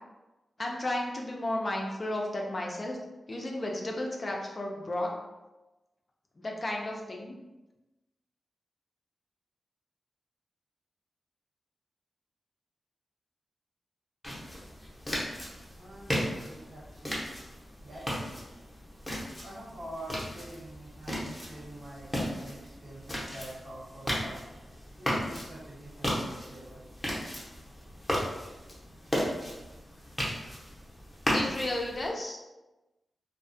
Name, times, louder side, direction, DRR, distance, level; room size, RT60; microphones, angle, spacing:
voice 1, 0.6-3.0 3.3-5.1 6.4-7.4 31.3-32.4, left 1 dB, 40° left, -1 dB, 0.4 m, -33 dB
sound 1, 14.2-32.1, equal, 15° left, 0.7 m, -35 dB
voice 2, 15.8-17.2 17.8-18.4 19.4-24.4 25.0-26.8, right 1 dB, 60° right, -7 dB, 1.1 m, -45 dB
2.3 x 2.1 x 2.6 m, 1.1 s
cardioid pair, 65°, 0 cm